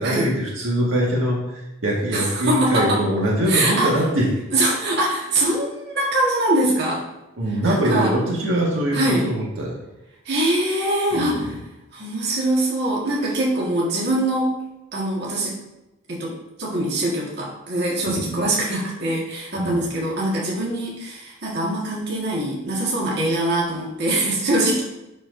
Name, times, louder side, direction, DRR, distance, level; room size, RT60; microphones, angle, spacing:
voice 1, 0.0-4.3 7.4-9.8 11.1-11.6 13.3-13.4 18.1-18.5 19.6-19.8, right 1 dB, 70° right, -4 dB, 1.8 m, -23 dB
voice 2, 2.1-3.0 3.5-4.0 4.5-7.1 7.6-8.1 8.9-9.2 10.3-11.5 11.9-14.6 14.9-15.5 16.1-24.8, right 1 dB, 50° right, -5 dB, 1.7 m, -23 dB
12.5 x 4.4 x 2.7 m, 0.95 s
head